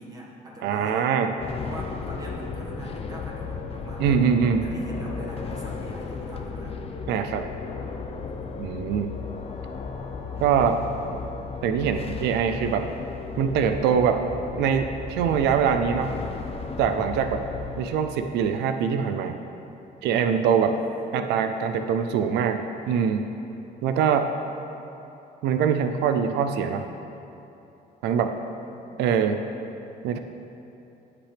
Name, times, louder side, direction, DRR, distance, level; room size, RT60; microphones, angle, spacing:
voice 1, 0.0-1.2 1.6-4.2 4.6-6.8 20.7-21.1 28.6-29.0, right 1 dB, 20° right, -4 dB, 1.7 m, -42 dB
voice 2, 0.6-1.3 4.0-4.7 7.1-7.4 8.6-9.1 10.4-10.8 11.6-12.9 13.4-14.2 14.6-16.1 16.8-17.4 17.8-19.4 20.0-20.8 21.1-22.6 22.9-23.3 23.8-24.3 25.4-26.9 28.0-28.3 29.0-29.4 30.0-30.2, right 7 dB, 85° right, 7 dB, 0.5 m, -23 dB
sound 1, 1.4-17.8, left 5 dB, 35° left, 0.8 m, -35 dB
15.5 x 5.9 x 3.4 m, 2.9 s
cardioid pair, 110°, 17 cm